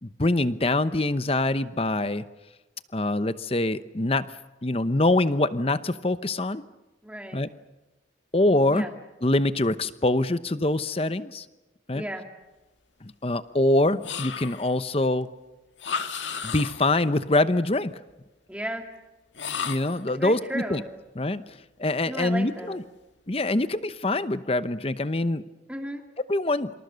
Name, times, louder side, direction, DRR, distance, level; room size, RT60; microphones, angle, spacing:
voice 1, 0.0-2.2 2.9-4.3 4.6-6.6 7.3-7.5 8.3-8.9 9.2-11.4 11.9-12.0 13.0-15.3 16.4-17.9 19.6-20.8 21.2-22.8 23.3-25.4 26.3-26.7, left 2 dB, 30° left, 13 dB, 0.9 m, -24 dB
voice 2, 7.0-7.4 8.7-8.9 11.9-12.2 18.5-18.9 20.2-20.9 22.1-22.8 25.7-26.0, right 1 dB, 5° right, 4 dB, 2.4 m, -34 dB
sound 1, 14.0-14.8 15.8-17.0 19.3-20.1, left 6 dB, 80° left, 1.8 m, -33 dB
27.0 x 26.5 x 6.4 m, 1.1 s
head